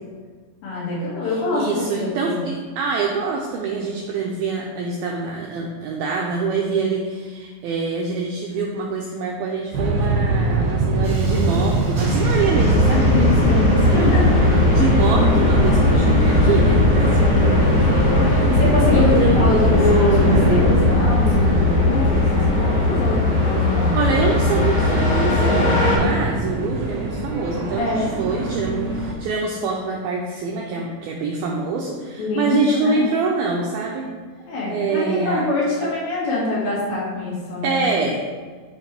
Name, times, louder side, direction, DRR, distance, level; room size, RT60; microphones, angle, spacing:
voice 1, 0.6-2.4 12.9-14.4 17.3-17.5 17.9-24.1 25.9-26.1 27.8-28.1 32.2-33.0 34.5-37.8, left 2 dB, 75° left, -7 dB, 4.4 m, -24 dB
voice 2, 1.5-14.2 14.7-17.3 18.9-19.8 23.9-34.1 34.7-35.5 37.6-38.2, right 4 dB, 85° right, -1 dB, 2.1 m, -25 dB
sound 1, 9.7-29.1, right 2 dB, 70° right, 1.5 m, -23 dB
Thunderstorm, 11.0-22.5, left 1 dB, 45° right, 1.5 m, -26 dB
sound 2, 12.5-26.0, left 3 dB, 45° left, 2.4 m, -19 dB
11.5 x 4.8 x 3.5 m, 1.5 s
omnidirectional pair, 5.1 m